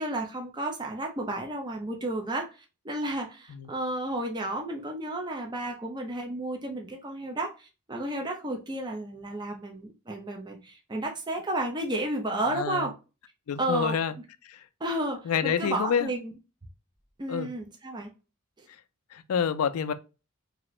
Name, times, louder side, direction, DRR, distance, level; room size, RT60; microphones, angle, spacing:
voice 1, 0.0-12.9 13.6-13.9 14.8-16.3 17.2-18.1 18.6-18.7, right 1 dB, 20° right, 0.5 m, -32 dB
voice 2, 12.5-12.9 13.5-14.1 14.5-14.6 15.3-16.1 17.3-17.5 19.1-19.9, left 7 dB, 75° left, 0.4 m, -28 dB
2.8 x 2.5 x 3.0 m
head